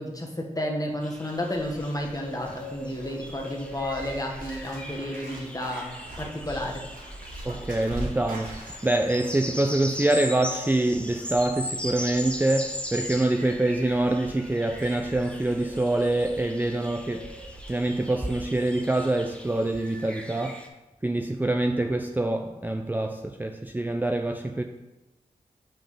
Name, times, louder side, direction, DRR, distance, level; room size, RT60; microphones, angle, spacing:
voice 1, 0.0-6.9, left 1 dB, 25° left, 1.3 m, -32 dB
sound 1, 1.0-20.7, equal, 10° left, 0.9 m, -40 dB
Bird, 1.1-18.7 19.0-19.3, equal, 80° right, 1.4 m, -43 dB
voice 2, 7.4-17.4 17.7-20.6 21.0-24.6, right 2 dB, 15° right, 0.4 m, -25 dB
5.7 x 5.3 x 3.3 m
cardioid pair, 45°, 14 cm